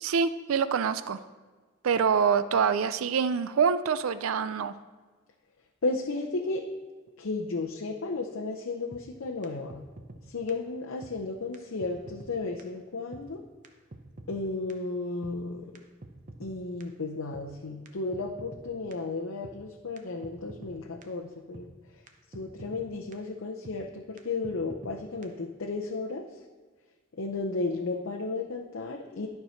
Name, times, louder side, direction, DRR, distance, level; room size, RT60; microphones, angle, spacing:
voice 1, 0.0-1.2 1.8-4.7, right 6 dB, 75° right, 13 dB, 0.4 m, -25 dB
voice 2, 5.8-6.6 7.2-9.8 10.3-13.4 14.3-15.8 16.4-21.7 22.3-26.3 27.1-29.3, left 3 dB, 65° left, 1 dB, 0.7 m, -34 dB
sound 1, 8.9-9.0 9.4-9.5 9.7-10.2 10.5-10.6 11.0-11.1 11.5-11.6 11.8-12.3 12.6-12.7 13.1-13.2 13.6-13.7 13.9-14.4 14.7-14.8 15.2-15.3 15.7-16.5 16.8-16.9 17.3-17.4 17.9-18.0 18.1-18.6 18.9-19.0 19.4-19.5 20.0-20.1 20.2-20.7 21.0-21.1 21.5-21.7 22.1-22.2 22.3-22.8 23.1-23.2 23.6-23.8 24.2-24.3 24.4-24.9 25.2-25.3, right 2 dB, 35° right, 0.8 m, -45 dB
12.0 x 4.6 x 5.7 m, 1.4 s
head